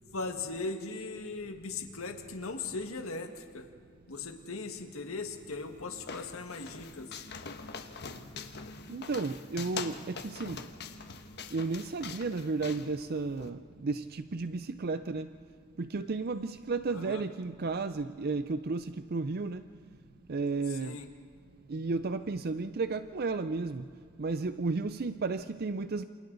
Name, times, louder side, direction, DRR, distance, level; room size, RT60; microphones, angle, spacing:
voice 1, 0.1-3.7 4.1-7.1 16.9-17.2 20.7-21.1, left 3 dB, 80° left, 5 dB, 1.8 m, -39 dB
sound 1, 5.3-13.5, left 5 dB, 50° left, 1.3 m, -44 dB
voice 2, 8.9-10.6 11.5-15.3 15.8-19.7 20.3-21.0 21.7-23.9 24.2-26.1, right 3 dB, 45° right, 11 dB, 0.5 m, -33 dB
28.0 x 28.0 x 4.0 m, 2.2 s
head